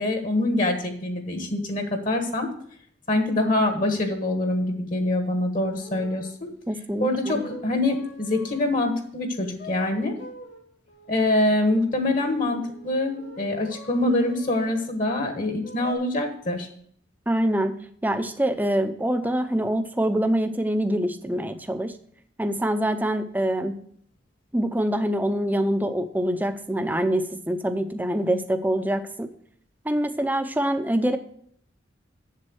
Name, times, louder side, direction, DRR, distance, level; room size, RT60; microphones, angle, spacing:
voice 1, 0.0-2.5 3.1-6.5 7.0-10.1 11.1-16.7, left 2 dB, 45° left, 5 dB, 1.4 m, -25 dB
sound 1, 5.7-6.3 7.2-8.8 9.6-14.8 15.6-15.9, left 1 dB, 75° left, 2.2 m, -44 dB
voice 2, 6.7-7.4 17.3-17.8 18.0-21.9 22.4-23.8 24.5-29.3 29.8-31.2, right 1 dB, 10° right, 8 dB, 0.6 m, -25 dB
7.5 x 7.4 x 6.2 m, 0.62 s
head